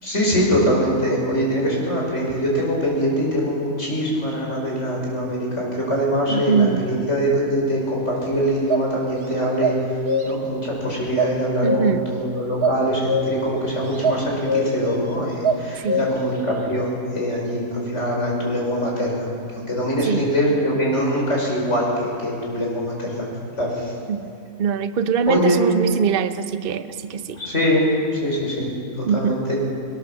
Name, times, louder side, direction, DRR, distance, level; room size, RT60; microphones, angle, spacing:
voice 1, 0.0-10.0 10.2-19.3 19.5-23.3 23.6-23.9 25.3-25.6 27.3-27.9 28.2-29.6, equal, 50° left, -2 dB, 5.8 m, -23 dB
voice 2, 6.3-6.9 11.6-12.1 15.8-16.1 20.0-20.2 24.1-27.4 29.1-29.4, right 7 dB, 45° right, 9 dB, 0.9 m, -23 dB
sound 1, 8.0-8.1 8.7-8.8 9.6-10.5 11.2-12.1 12.6-13.6 14.0-15.0 15.4-16.4, equal, 80° right, 2.0 m, -23 dB
21.0 x 19.5 x 7.1 m, 2.4 s
omnidirectional pair, 1.6 m